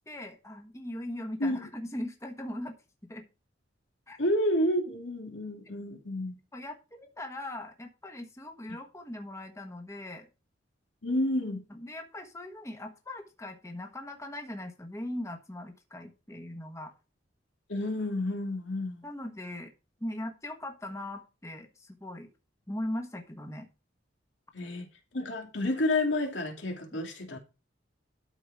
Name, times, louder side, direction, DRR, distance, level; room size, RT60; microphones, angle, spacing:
voice 1, 0.0-2.8 3.1-3.3 4.1-4.2 6.5-10.3 11.7-16.9 19.0-19.7 20.0-22.3 22.7-23.7 26.9-27.0, left 1 dB, 15° left, 1.3 m, -40 dB
voice 2, 4.2-6.4 11.0-11.6 17.7-19.0 24.5-24.9 25.1-27.4, left 1 dB, 80° left, 2.5 m, -30 dB
12.5 x 4.9 x 4.8 m
head